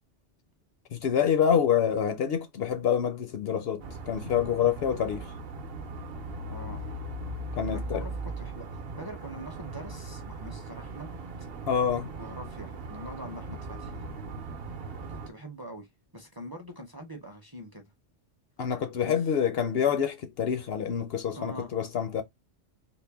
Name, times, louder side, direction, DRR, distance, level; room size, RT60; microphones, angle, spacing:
voice 1, 0.9-5.3 7.5-8.0 11.7-12.1 18.6-22.2, left 8 dB, 65° left, 0.8 m, -27 dB
sound 1, 3.8-15.3, right 2 dB, 60° right, 0.9 m, -39 dB
voice 2, 6.5-6.9 7.7-11.2 12.2-14.0 15.1-17.9 19.0-19.2 21.4-21.7, equal, 25° right, 0.6 m, -43 dB
3.9 x 2.1 x 3.4 m
omnidirectional pair, 1.2 m